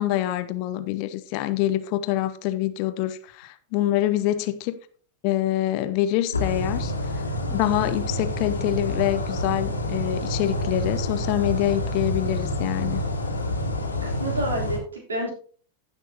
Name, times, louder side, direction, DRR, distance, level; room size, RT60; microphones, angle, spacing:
voice 1, 0.0-4.7 5.2-6.9 7.5-13.0, left 13 dB, 45° left, 0.7 m, -25 dB
sound 1, 6.3-14.8, left 1 dB, 80° left, 2.1 m, -28 dB
voice 2, 14.0-15.3, right 1 dB, 70° right, 3.4 m, -29 dB
15.5 x 6.5 x 2.8 m
figure-of-eight pair, 90°, 0 cm